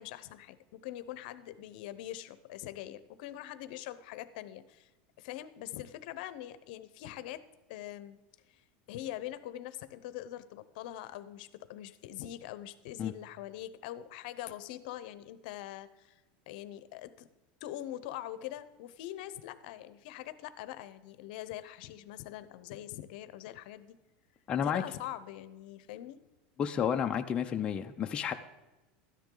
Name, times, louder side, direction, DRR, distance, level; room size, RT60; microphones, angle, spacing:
voice 1, 0.0-4.9 5.2-7.4 7.7-8.2 8.5-8.6 8.9-16.2 16.5-17.3 17.6-24.0 24.6-26.3, left 13 dB, 65° left, 13 dB, 0.8 m, -43 dB
voice 2, 24.5-24.8 26.6-28.3, left 8 dB, 20° left, 5 dB, 0.5 m, -31 dB
13.0 x 10.0 x 3.9 m, 1.1 s
supercardioid pair, 155°, 5 cm